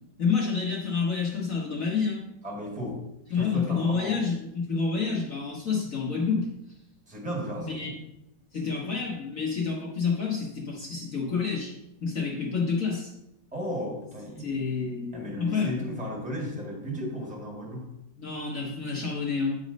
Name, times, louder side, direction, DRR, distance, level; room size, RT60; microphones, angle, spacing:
voice 1, 0.2-2.2 3.3-6.5 7.6-7.9 8.5-11.7 12.0-13.1 14.4-15.8 18.2-19.6, left 5 dB, 50° left, -4 dB, 1.5 m, -28 dB
voice 2, 2.4-3.0 3.3-4.2 7.1-8.0 13.5-14.6 15.1-17.9, equal, 5° right, -2 dB, 1.7 m, -35 dB
8.9 x 4.2 x 5.2 m, 0.86 s
omnidirectional pair, 2.0 m